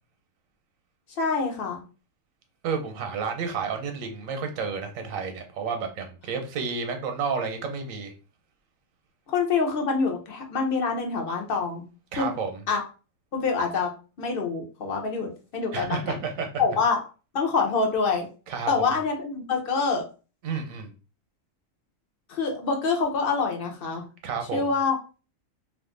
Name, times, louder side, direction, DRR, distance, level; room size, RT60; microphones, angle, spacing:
voice 1, 1.2-1.8 9.3-11.8 12.2-12.3 12.7-12.8 13.3-13.9 14.2-16.2 16.6-17.0 17.3-18.3 18.7-20.0 22.3-24.1 24.5-25.0, left 4 dB, 50° left, 2 dB, 0.9 m, -26 dB
voice 2, 2.6-8.1 12.1-12.6 15.7-16.5 18.5-18.9 20.4-20.9 24.2-24.7, right 5 dB, 85° right, 5 dB, 1.1 m, -31 dB
2.6 x 2.4 x 3.7 m, 0.34 s
omnidirectional pair, 1.4 m